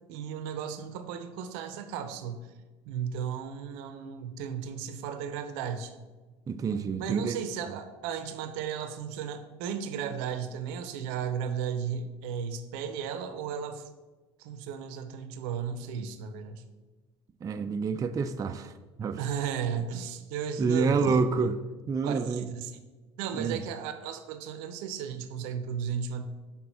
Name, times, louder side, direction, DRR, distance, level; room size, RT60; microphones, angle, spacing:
voice 1, 0.1-2.5 2.9-5.9 7.0-13.9 14.4-16.6 19.2-21.2 22.0-22.7 23.2-26.2, right 7 dB, 70° right, 10 dB, 0.7 m, -35 dB
voice 2, 6.5-7.4 17.4-18.7 19.0-19.2 20.6-21.5 21.9-22.5 23.3-23.6, right 4 dB, 25° right, 8 dB, 0.4 m, -28 dB
6.0 x 3.6 x 5.9 m, 1.3 s
hypercardioid pair, 70°, 14 cm